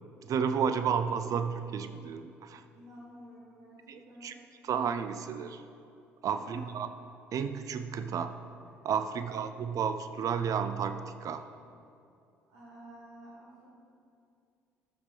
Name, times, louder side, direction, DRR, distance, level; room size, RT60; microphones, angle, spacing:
voice 1, 0.2-2.6 3.9-4.3 4.6-5.6 6.2-6.9 7.3-8.3 8.8-11.5, right 7 dB, 50° right, 9 dB, 0.5 m, -32 dB
voice 2, 2.7-4.4 6.3-6.7 9.1-9.3 12.5-13.8, equal, 65° right, -9 dB, 2.2 m, -51 dB
14.5 x 7.3 x 3.4 m, 2.5 s
figure-of-eight pair, 50°, 7 cm